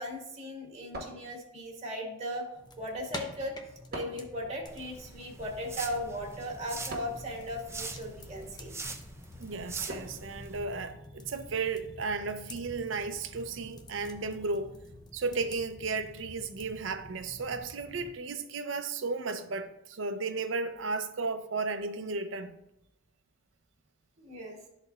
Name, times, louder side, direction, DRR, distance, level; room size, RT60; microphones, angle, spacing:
voice 1, 0.0-2.5 2.8-3.6 3.9-8.7 24.2-24.6, equal, 35° right, 1.6 m, -37 dB
sound 1, 0.9-1.8 3.9-4.4 6.9-7.3 9.9-10.3, right 1 dB, 55° right, 1.3 m, -42 dB
sound 2, 2.5-18.1, left 2 dB, 20° left, 0.6 m, -48 dB
sound 3, 4.7-10.6, right 3 dB, 15° right, 0.6 m, -44 dB
voice 2, 9.4-14.7 15.1-22.5, right 4 dB, 70° right, 0.6 m, -34 dB
12.0 x 4.1 x 2.4 m
head